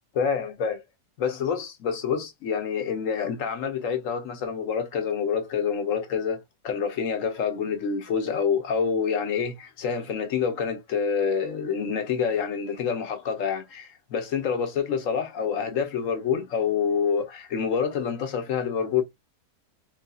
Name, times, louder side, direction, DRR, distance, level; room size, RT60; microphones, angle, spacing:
voice 1, 0.1-0.8 1.2-19.0, left 6 dB, 60° left, 1.1 m, -27 dB
3.9 x 2.7 x 2.3 m
omnidirectional pair, 1.7 m